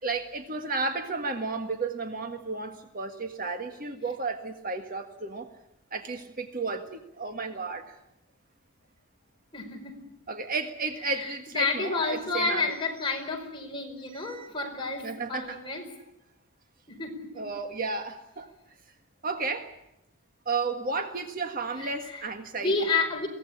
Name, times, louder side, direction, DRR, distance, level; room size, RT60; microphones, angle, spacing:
voice 1, 0.0-5.5 5.9-8.0 10.3-12.7 14.1-14.5 15.0-15.6 17.3-18.5 19.2-19.7 20.4-22.9, right 3 dB, 40° right, 6 dB, 1.7 m, -33 dB
voice 2, 9.5-9.9 11.1-11.3 11.5-15.8 16.9-17.4 22.1-22.2 22.5-23.3, left 3 dB, 20° left, 1 dB, 5.0 m, -30 dB
23.0 x 17.5 x 9.9 m, 0.83 s
head